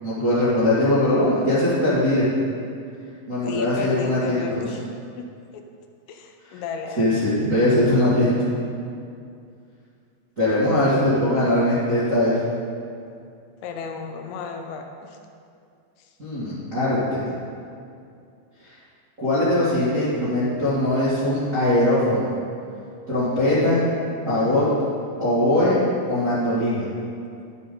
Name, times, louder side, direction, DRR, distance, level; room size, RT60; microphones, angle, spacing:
voice 1, 0.0-2.3 3.3-4.6 6.5-6.6 7.0-8.4 10.4-12.4 16.2-17.0 19.2-22.3 23.1-23.9 24.2-24.7 25.2-25.8 26.1-26.9, left 1 dB, 35° right, -12 dB, 1.3 m, -21 dB
voice 2, 3.4-4.8 5.2-5.3 5.5-5.6 6.1-7.2 13.6-15.2 16.0-16.1, left 5 dB, 90° left, 4 dB, 3.5 m, -34 dB
11.0 x 9.5 x 3.9 m, 2.4 s
omnidirectional pair, 5.7 m